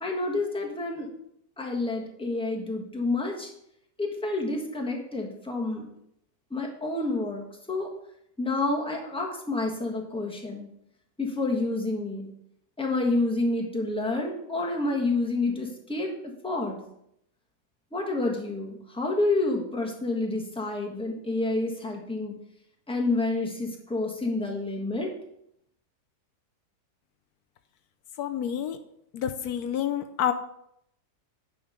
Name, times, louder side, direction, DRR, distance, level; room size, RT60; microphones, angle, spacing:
voice 1, 0.0-1.1 1.6-3.5 4.0-5.9 6.5-7.9 8.4-10.7 11.2-12.3 12.8-16.8 17.9-22.3 22.9-25.1, left 2 dB, 5° left, -1 dB, 1.4 m, -29 dB
voice 2, 28.2-28.8 29.1-30.3, left 9 dB, 75° left, 8 dB, 1.1 m, -28 dB
9.3 x 5.6 x 5.1 m, 0.74 s
omnidirectional pair, 1.7 m